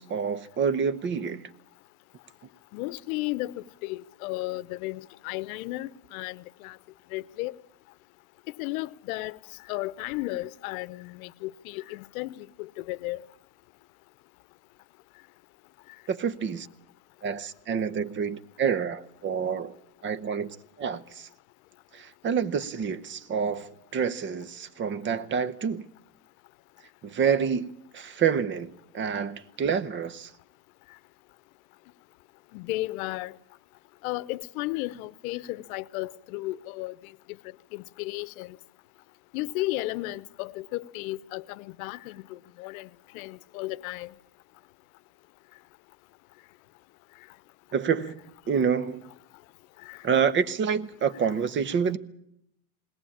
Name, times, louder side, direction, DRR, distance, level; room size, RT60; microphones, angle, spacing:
voice 1, 0.0-1.5 16.1-16.7 17.2-19.7 20.0-21.3 21.9-25.8 27.0-30.3 47.7-48.2 48.5-49.1 50.0-52.0, right 6 dB, 25° right, 0.9 m, -28 dB
voice 2, 2.7-6.8 7.1-7.6 8.6-9.4 9.7-13.2 32.5-33.4 34.0-37.4 37.7-38.6 39.3-42.9 43.1-44.1 49.8-50.0, left 19 dB, 75° left, 0.9 m, -34 dB
20.5 x 18.0 x 8.7 m
supercardioid pair, 140°, 42 cm